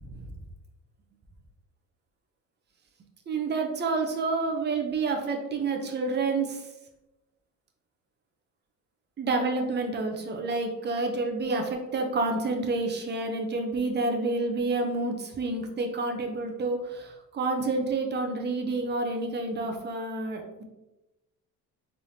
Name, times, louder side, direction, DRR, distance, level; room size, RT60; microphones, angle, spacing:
voice 1, 3.3-6.7 9.2-20.6, right 3 dB, 30° right, 3 dB, 0.7 m, -29 dB
4.4 x 3.5 x 2.7 m, 1.0 s
cardioid pair, 125°, 34 cm